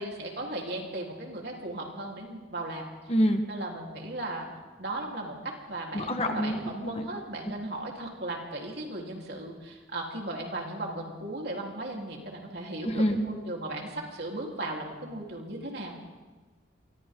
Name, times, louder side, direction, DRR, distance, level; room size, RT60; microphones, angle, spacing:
voice 1, 0.0-2.9 3.5-4.5 4.8-15.9, right 1 dB, 60° right, -1 dB, 3.9 m, -36 dB
voice 2, 3.1-3.4 5.9-7.2 12.8-13.2, equal, 30° left, 5 dB, 1.5 m, -27 dB
30.0 x 24.0 x 3.9 m, 1.3 s
head